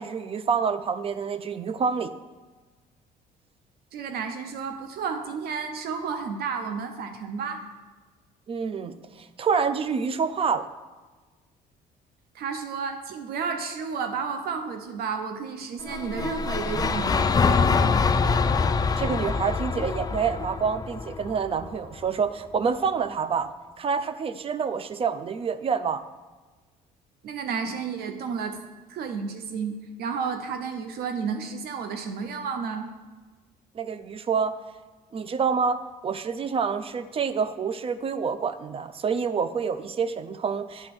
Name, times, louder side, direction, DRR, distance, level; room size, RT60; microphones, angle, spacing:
voice 1, 0.0-2.1 8.5-10.7 19.0-26.0 33.7-34.5 35.1-40.9, right 6 dB, 35° right, 13 dB, 0.5 m, -27 dB
voice 2, 3.9-7.6 12.3-17.4 27.2-28.6 28.9-32.9, right 6 dB, 65° right, 6 dB, 0.8 m, -32 dB
sound 1, 15.8-22.0, left 5 dB, 20° left, 0.4 m, -25 dB
8.9 x 4.2 x 6.1 m, 1.3 s
cardioid pair, 110°, 17 cm